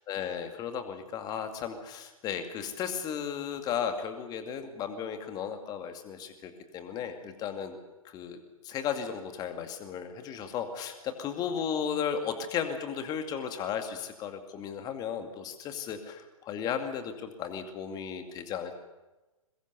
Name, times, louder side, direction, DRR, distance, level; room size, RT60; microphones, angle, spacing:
voice 1, 0.1-7.8 8.0-8.4 8.6-18.7, left 7 dB, 20° left, 7 dB, 2.3 m, -35 dB
22.0 x 21.5 x 6.9 m, 1.1 s
figure-of-eight pair, 115°, 18 cm